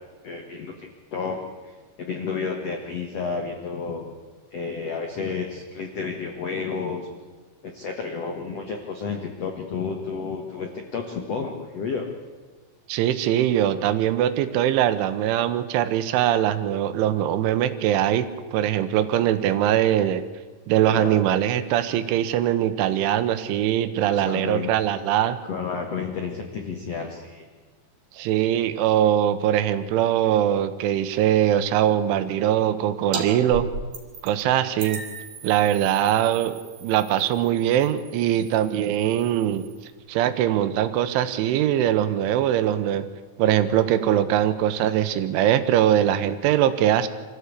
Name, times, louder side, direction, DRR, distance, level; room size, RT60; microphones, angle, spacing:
voice 1, 0.2-1.4 1.6-4.0 4.5-7.1 7.6-12.1 20.8-21.2 24.1-24.7 25.5-27.4, left 5 dB, 80° left, 4 dB, 1.4 m, -31 dB
voice 2, 12.9-20.2 20.7-25.4 28.2-33.7 34.2-35.0 35.4-39.7 40.1-43.1 43.4-47.1, right 11 dB, 90° right, 11 dB, 3.5 m, -22 dB
sound 1, 33.1-33.3 33.5-34.4 34.8-39.9, right 4 dB, 50° right, 4.2 m, -37 dB
25.0 x 14.5 x 8.5 m, 1.3 s
omnidirectional pair, 5.4 m